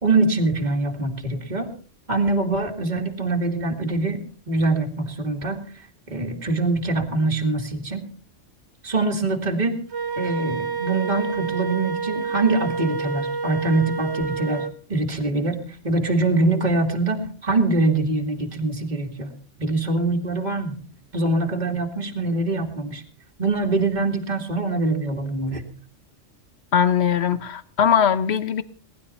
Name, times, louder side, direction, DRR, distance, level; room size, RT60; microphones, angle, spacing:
voice 1, 0.0-1.7 2.1-5.6 6.1-8.1 8.8-9.8 10.2-19.3 19.6-20.8 21.1-23.0 23.4-25.6, right 2 dB, 40° right, 2.4 m, -24 dB
Wind instrument woodwind instrument, 9.9-14.8, right 5 dB, 65° right, 1.4 m, -28 dB
voice 2, 26.7-28.6, left 8 dB, 65° left, 1.3 m, -20 dB
19.5 x 12.0 x 5.6 m
omnidirectional pair, 1.2 m